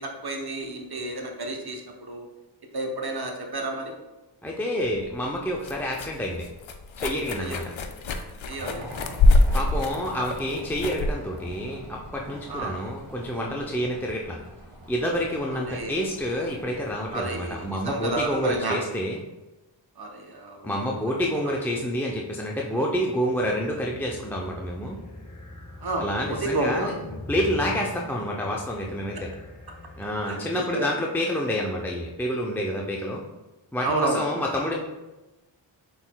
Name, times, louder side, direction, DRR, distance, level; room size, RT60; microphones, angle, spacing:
voice 1, 0.0-2.2 2.7-3.9 7.4-7.6 8.4-8.9 10.1-10.3 12.5-12.7 15.5-16.1 17.1-18.8 20.0-20.9 25.8-26.9 30.3-30.9 33.8-34.3, right 2 dB, 55° right, 2 dB, 0.9 m, -31 dB
voice 2, 4.4-6.4 7.0-7.6 9.5-14.4 14.9-19.2 20.6-25.0 26.0-26.9 27.3-29.3 30.0-33.2 33.7-34.8, equal, 5° left, -2 dB, 0.5 m, -28 dB
sound 1, 4.8-12.6, left 2 dB, 85° left, 0.5 m, -25 dB
sound 2, 8.6-18.6, equal, 75° right, 1.5 m, -44 dB
sound 3, 23.2-30.6, left 1 dB, 40° left, 1.0 m, -42 dB
5.9 x 4.0 x 2.2 m, 1.1 s
wide cardioid pair, 55°, 46 cm